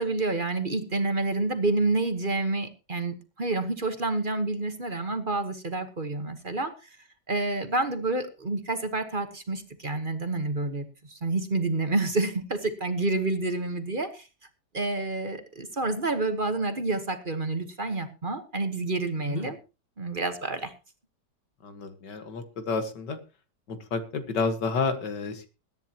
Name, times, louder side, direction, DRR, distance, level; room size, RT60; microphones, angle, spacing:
voice 1, 0.0-6.7 7.3-14.2 14.7-19.6 20.0-20.7, right 2 dB, 35° right, 8 dB, 1.3 m, -28 dB
voice 2, 21.6-23.2 23.7-25.5, left 4 dB, 90° left, 8 dB, 2.3 m, -30 dB
21.5 x 10.5 x 2.9 m, 0.30 s
omnidirectional pair, 1.8 m